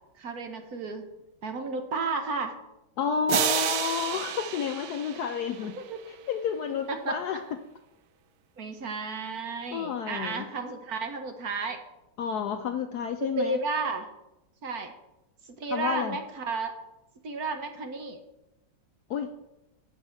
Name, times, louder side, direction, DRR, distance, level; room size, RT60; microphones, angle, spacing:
voice 1, 0.2-1.0 1.4-2.5 5.8-6.0 6.9-7.2 8.6-11.8 13.2-14.1 14.6-14.9 15.6-16.7 17.2-18.2, right 3 dB, 55° right, 6 dB, 1.3 m, -32 dB
voice 2, 3.0-5.8 6.1-7.6 9.7-10.5 12.2-13.6 15.7-16.2 19.1-19.3, left 7 dB, 70° left, 7 dB, 0.9 m, -30 dB
sound 1, 3.3-6.0, right 10 dB, 85° right, 1.5 m, -30 dB
8.0 x 5.4 x 7.7 m, 0.95 s
omnidirectional pair, 2.1 m